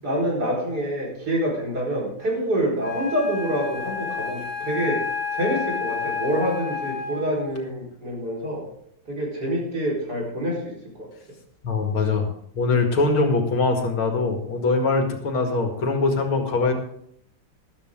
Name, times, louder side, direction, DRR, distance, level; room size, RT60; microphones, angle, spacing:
voice 1, 0.0-5.0 5.3-8.6 9.1-10.7 11.0-11.1, equal, 50° right, -3 dB, 5.0 m, -26 dB
Wind instrument woodwind instrument, 2.8-7.4, left 5 dB, 5° left, 5.6 m, -30 dB
voice 2, 11.6-12.3 12.5-16.7, left 3 dB, 90° left, 3 dB, 2.8 m, -22 dB
13.0 x 12.5 x 3.8 m, 0.69 s
omnidirectional pair, 2.2 m